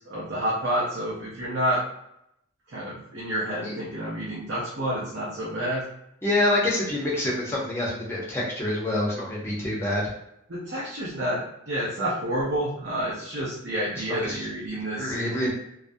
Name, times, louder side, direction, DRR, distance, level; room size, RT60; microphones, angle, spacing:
voice 1, 0.0-1.8 2.7-5.8 10.5-15.1 15.4-15.5, right 1 dB, 70° right, -6 dB, 0.6 m, -29 dB
voice 2, 6.2-10.1 14.1-14.4 14.9-15.5, left 1 dB, 15° left, -5 dB, 0.6 m, -26 dB
2.3 x 2.0 x 2.6 m, 0.80 s
head